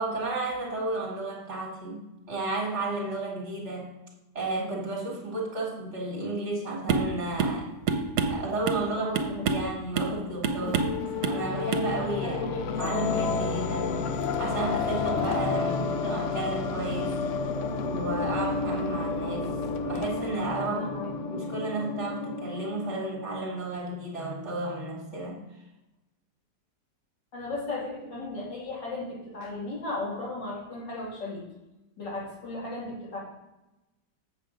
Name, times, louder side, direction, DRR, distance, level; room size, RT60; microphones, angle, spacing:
voice 1, 0.0-3.9 4.3-7.7 8.3-9.1 9.5-10.9 11.2-12.4 12.8-13.9 14.4-17.1 17.9-19.5 19.8-20.8 21.3-25.4, right 2 dB, 40° right, -1 dB, 2.0 m, -32 dB
sound 1, 6.9-7.1 7.4-7.6 7.9-8.9 9.2-9.7 10.0-10.2 10.4-11.0 11.2-11.4 11.7-11.9, right 5 dB, 70° right, 1.3 m, -27 dB
voice 2, 8.8-9.7 12.2-12.6 15.6-15.9 20.7-21.4 27.3-31.4 32.0-33.2, left 2 dB, 85° left, -5 dB, 3.2 m, -36 dB
sound 2, 10.6-23.5, left 4 dB, 65° left, 0.7 m, -31 dB
7.6 x 7.4 x 5.0 m, 0.98 s
omnidirectional pair, 1.8 m